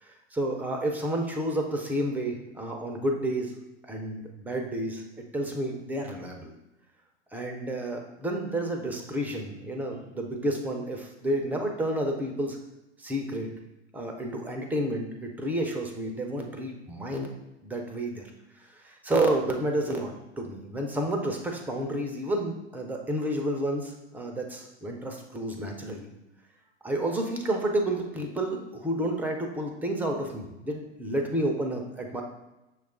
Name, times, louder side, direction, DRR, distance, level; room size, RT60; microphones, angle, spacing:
voice 1, 0.0-3.5 3.8-6.5 7.3-12.6 13.0-13.5 13.9-17.3 17.6-18.3 18.6-26.1 26.8-32.2, right 1 dB, 5° right, 2 dB, 0.4 m, -30 dB
6.1 x 2.3 x 3.6 m, 0.97 s
hypercardioid pair, 100°, 36 cm